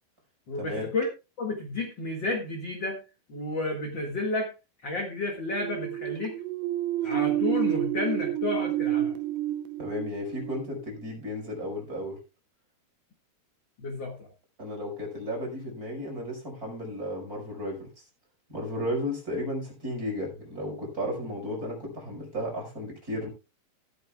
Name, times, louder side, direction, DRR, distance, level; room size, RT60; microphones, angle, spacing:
voice 1, 0.5-1.1 1.4-3.0 3.3-4.5 4.8-6.4 7.0-9.1 13.8-14.3, left 2 dB, 40° left, 2 dB, 1.7 m, -31 dB
sound 1, 5.4-11.0, right 13 dB, 75° right, 2.4 m, -30 dB
voice 2, 9.8-12.2 14.6-17.9 18.5-23.3, left 1 dB, 20° right, -1 dB, 5.4 m, -34 dB
15.0 x 13.0 x 2.4 m, 0.28 s
omnidirectional pair, 4.8 m